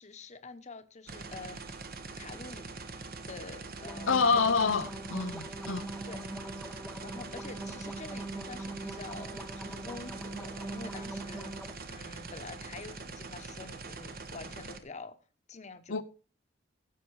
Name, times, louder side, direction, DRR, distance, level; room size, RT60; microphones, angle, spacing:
voice 1, 0.0-1.8 2.2-2.7 3.3-4.5 6.0-6.6 7.0-15.2 15.5-16.0, left 3 dB, 40° left, 1.1 m, -47 dB
sound 1, 1.1-14.8, right 3 dB, 55° right, 1.4 m, -43 dB
sound 2, 3.7-11.7, right 1 dB, ahead, 1.1 m, -42 dB
voice 2, 4.1-5.9 15.9-16.0, left 4 dB, 90° left, 0.8 m, -27 dB
16.0 x 7.6 x 4.8 m
head